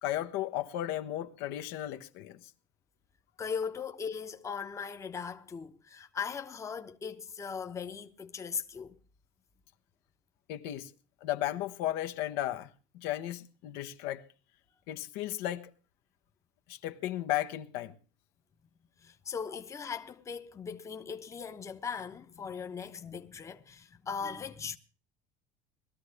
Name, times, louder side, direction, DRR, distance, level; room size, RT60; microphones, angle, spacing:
voice 1, 0.0-2.5 10.5-10.9 11.2-14.3 14.9-15.7 16.7-17.9, left 13 dB, 75° left, 1.2 m, -35 dB
voice 2, 3.4-9.0 19.0-24.8, left 6 dB, 20° left, 0.9 m, -39 dB
20.5 x 13.0 x 3.3 m
cardioid pair, 140°, 15 cm